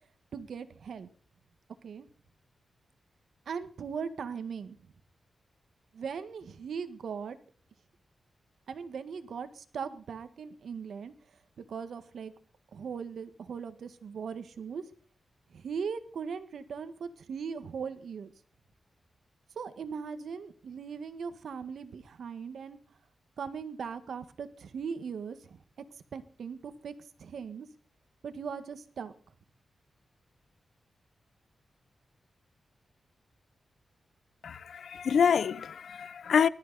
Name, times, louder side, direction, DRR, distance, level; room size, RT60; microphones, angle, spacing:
voice 1, 0.3-1.1 1.8-2.0 3.4-4.8 5.9-7.4 8.7-11.1 11.6-12.3 12.7-14.8 15.5-18.3 19.5-22.8 23.4-25.8 26.1-26.9 27.2-27.7 28.2-29.1, right 6 dB, 80° right, 1.7 m, -39 dB
voice 2, 34.4-36.5, left 7 dB, 80° left, 0.7 m, -26 dB
19.5 x 13.5 x 4.2 m
wide cardioid pair, 95°, 0 cm